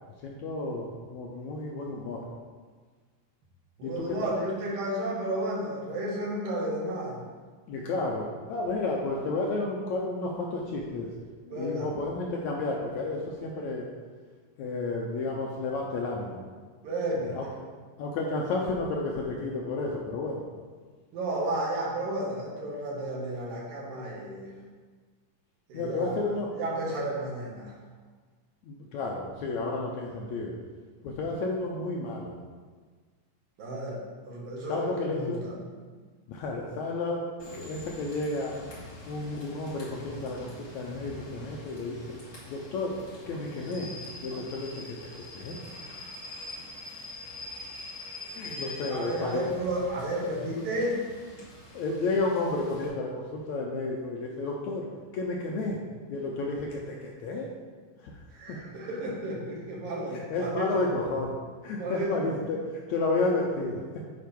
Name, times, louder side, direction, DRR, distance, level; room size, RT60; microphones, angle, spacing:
voice 1, 0.2-2.2 3.8-4.3 7.7-11.1 11.5-13.9 14.6-16.4 17.3-17.5 18.0-20.5 25.7-26.5 28.6-30.6 31.0-32.3 34.7-35.4 36.3-37.3 37.5-38.5 39.1-42.2 42.5-43.0 43.3-43.9 44.2-45.6 47.0-47.1 48.3-49.4 51.7-54.9 55.1-55.8 56.1-57.5 58.0-58.2 58.5-58.6 60.1-61.3 61.6-63.8, left 3 dB, 75° left, -1 dB, 1.8 m, -31 dB
voice 2, 3.8-7.2 11.5-11.9 16.8-17.4 21.1-24.5 25.7-26.2 26.5-27.7 33.6-35.6 48.4-51.0 58.3-60.9 61.7-62.4, right 1 dB, 75° right, -3 dB, 3.3 m, -32 dB
Rain / Train, 37.4-52.9, left 1 dB, 30° left, 2.8 m, -44 dB
9.4 x 4.5 x 5.3 m, 1.5 s
omnidirectional pair, 4.0 m